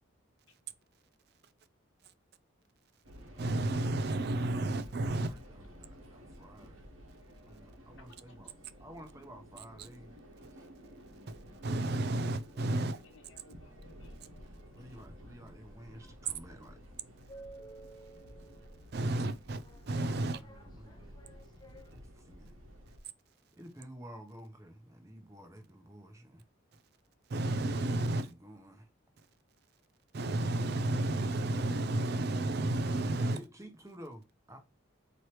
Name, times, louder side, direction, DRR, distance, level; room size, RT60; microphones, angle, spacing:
sound 1, 3.0-23.0, equal, 85° right, 1.1 m, -53 dB
voice 1, 3.4-5.3 11.6-13.0 18.9-20.4 27.3-28.3 30.1-33.4, right 2 dB, 50° right, 0.4 m, -31 dB
voice 2, 5.1-6.9 7.5-8.5 8.8-10.2 10.6-10.7 14.8-16.8 20.1-21.1 21.9-22.5 23.6-26.4 28.0-28.9 33.2-34.6, equal, 15° right, 0.9 m, -52 dB
voice 3, 12.8-14.5 14.8-15.0, left 2 dB, 75° left, 1.0 m, -62 dB
sound 2, 14.2-21.9, right 2 dB, 20° left, 0.3 m, -56 dB
4.5 x 3.0 x 3.1 m
head